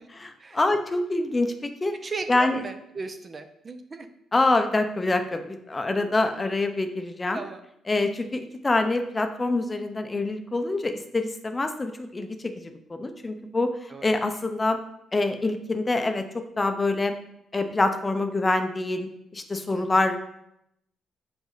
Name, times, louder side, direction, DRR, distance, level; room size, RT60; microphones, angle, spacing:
voice 1, 0.2-2.0 2.3-2.6 4.3-7.4 7.9-12.5 12.9-13.7 14.0-14.8 15.1-16.2 16.6-17.1 17.5-20.2, left 2 dB, 25° left, 7 dB, 0.6 m, -25 dB
voice 2, 2.0-4.1 7.3-7.6 13.9-14.1 19.7-19.9, right 4 dB, 35° right, 8 dB, 0.5 m, -36 dB
5.2 x 5.0 x 3.9 m, 0.78 s
cardioid pair, 90°, 0 cm